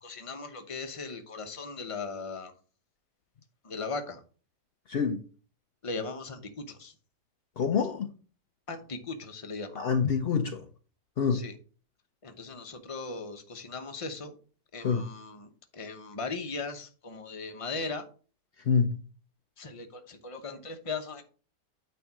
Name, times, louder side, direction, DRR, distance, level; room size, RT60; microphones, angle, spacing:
voice 1, 0.0-2.5 3.6-4.2 5.8-6.9 8.7-9.8 11.3-11.6 12.2-14.4 14.7-18.1 19.6-21.2, left 4 dB, 30° left, 0.7 m, -38 dB
voice 2, 7.6-8.1 9.8-10.6 11.2-11.4 14.8-15.1 18.7-19.0, left 6 dB, 70° left, 0.5 m, -26 dB
9.2 x 3.4 x 6.0 m
omnidirectional pair, 1.8 m